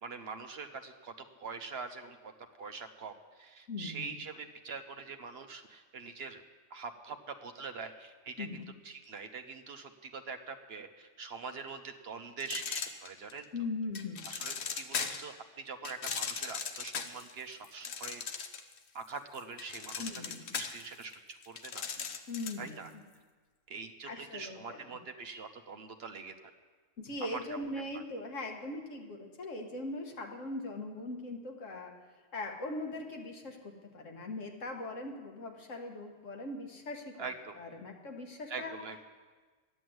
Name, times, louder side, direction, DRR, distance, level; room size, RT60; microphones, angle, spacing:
voice 1, 0.0-1.1 1.4-2.3 2.6-6.4 6.7-8.5 8.8-13.5 14.2-18.5 18.9-20.2 20.5-21.9 22.6-22.9 23.7-26.5 27.2-27.6 27.9-28.0 37.2-37.5 38.5-39.0, right 4 dB, 55° right, 7 dB, 1.1 m, -44 dB
voice 2, 3.7-4.2 8.4-8.7 13.5-14.2 20.0-20.6 22.3-23.0 24.1-24.9 27.0-31.9 32.3-37.1 37.6-38.7, left 2 dB, 80° left, 2 dB, 1.8 m, -40 dB
sound 1, 12.4-13.4 14.0-15.3 15.8-18.8 19.1-22.7, left 6 dB, 60° left, 1.1 m, -38 dB
12.0 x 10.0 x 7.8 m, 1.4 s
omnidirectional pair, 1.3 m